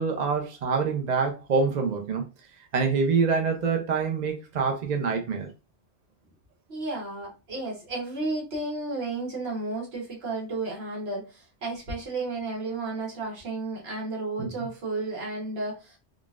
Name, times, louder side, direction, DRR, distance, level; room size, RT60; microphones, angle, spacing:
voice 1, 0.0-2.2 2.7-5.5 14.4-14.5, right 5 dB, 50° right, 0.6 m, -25 dB
voice 2, 6.7-16.0, right 2 dB, 65° right, 1.4 m, -33 dB
3.9 x 2.4 x 2.4 m
omnidirectional pair, 1.1 m